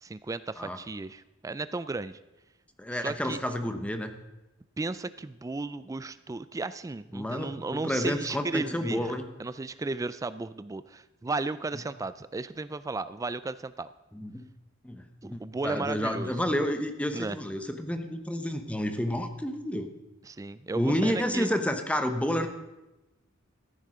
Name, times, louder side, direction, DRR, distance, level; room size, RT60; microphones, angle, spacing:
voice 1, 0.0-2.2 2.9-3.4 4.8-9.1 9.4-13.9 15.2-16.3 17.1-17.4 20.3-21.5, right 3 dB, 15° right, 15 dB, 0.3 m, -34 dB
voice 2, 2.8-4.1 7.1-9.2 14.1-14.5 14.8-19.9 20.7-22.5, equal, 5° left, 7 dB, 0.9 m, -30 dB
14.5 x 10.5 x 4.9 m, 0.99 s
head